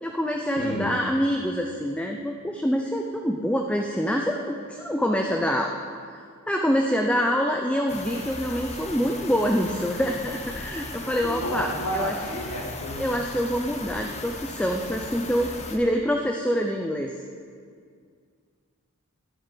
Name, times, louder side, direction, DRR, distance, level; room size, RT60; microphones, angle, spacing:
voice 1, 0.0-5.8 6.5-12.2 13.0-17.1, equal, 5° left, 2 dB, 0.5 m, -26 dB
voice 2, 0.6-1.0 11.2-13.0, equal, 90° left, -2 dB, 2.3 m, -31 dB
sound 1, 7.9-15.8, left 2 dB, 30° left, 1.0 m, -37 dB
12.0 x 6.3 x 8.4 m, 2.1 s
head